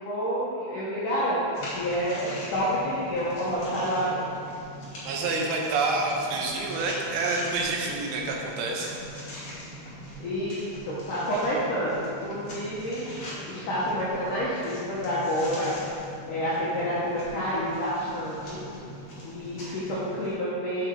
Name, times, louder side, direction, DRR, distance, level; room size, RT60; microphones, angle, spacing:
voice 1, 0.0-4.2 10.2-13.1 13.5-15.7 16.3-18.6 19.2-20.9, equal, 85° left, -8 dB, 1.8 m, -29 dB
sound 1, 1.5-20.3, equal, 40° left, 2.4 m, -41 dB
voice 2, 5.0-8.9, right 3 dB, 75° right, 0 dB, 3.0 m, -28 dB
8.1 x 7.3 x 4.6 m, 2.6 s
omnidirectional pair, 5.4 m